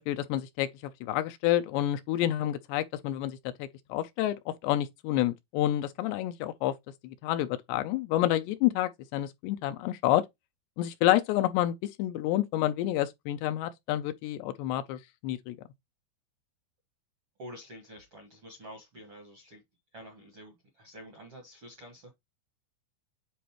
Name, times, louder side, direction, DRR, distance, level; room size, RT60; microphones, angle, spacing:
voice 1, 0.0-6.7 7.0-10.2 10.8-15.6, left 13 dB, 80° left, 2.6 m, -29 dB
voice 2, 17.4-19.6 19.9-22.1, equal, 65° right, 1.4 m, -48 dB
9.4 x 4.1 x 2.9 m
omnidirectional pair, 5.2 m